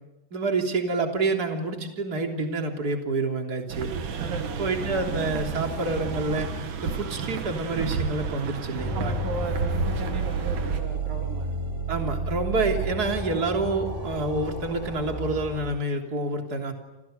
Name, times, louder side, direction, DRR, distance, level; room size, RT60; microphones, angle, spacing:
voice 1, 0.3-3.9 4.6-6.5 6.8-9.2 11.9-16.7, right 2 dB, 30° right, 3 dB, 3.7 m, -28 dB
sound 1, 3.7-10.8, right 5 dB, 90° right, 3.7 m, -31 dB
voice 2, 4.2-5.1 8.9-11.8, right 5 dB, 70° right, 5 dB, 3.3 m, -36 dB
sound 2, 8.8-15.6, right 2 dB, 5° right, 7.2 m, -31 dB
29.0 x 28.5 x 6.7 m, 1.0 s
omnidirectional pair, 3.6 m